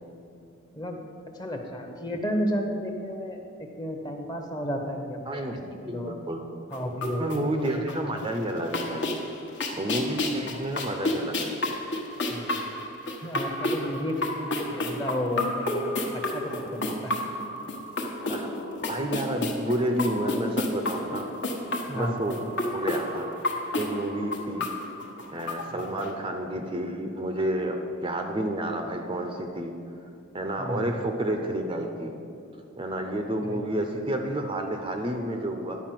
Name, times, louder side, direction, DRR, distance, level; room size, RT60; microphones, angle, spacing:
voice 1, 1.3-6.2 6.7-7.4 7.7-7.8 12.3-12.6 13.2-17.1 21.9-22.2 25.7-25.9 30.6-30.8 33.4-33.6, equal, 20° left, 3 dB, 0.9 m, -32 dB
voice 2, 5.3-6.4 7.2-9.1 9.8-11.5 18.3-18.5 18.8-21.3 21.9-22.4 22.7-23.3 23.8-24.7 25.3-29.7 30.3-32.1 32.8-35.8, right 1 dB, 25° right, 4 dB, 0.6 m, -30 dB
sound 1, 6.7-8.2 8.5-26.1, left 1 dB, 55° left, 1.2 m, -31 dB
10.5 x 5.2 x 7.5 m, 2.8 s
head